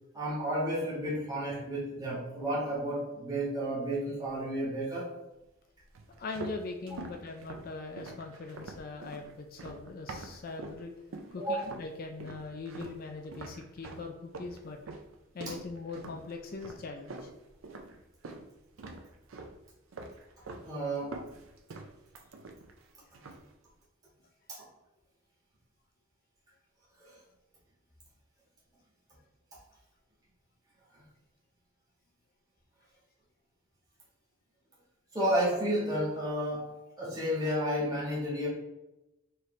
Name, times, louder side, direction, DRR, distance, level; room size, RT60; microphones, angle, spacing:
voice 1, 0.1-5.1 11.4-11.7 20.6-21.2 27.0-27.2 30.9-31.0 35.1-38.5, equal, 20° right, -7 dB, 1.4 m, -32 dB
sound 1, 5.9-10.8 11.1-11.9 12.2-18.5 18.8-19.6 19.9-20.7 21.0-22.8 23.1-23.5, right 3 dB, 80° right, 0.5 m, -45 dB
voice 2, 6.2-10.9 11.3-14.8 15.3-17.3, left 3 dB, 45° left, 4 dB, 0.4 m, -41 dB
4.5 x 3.1 x 3.2 m, 0.96 s
head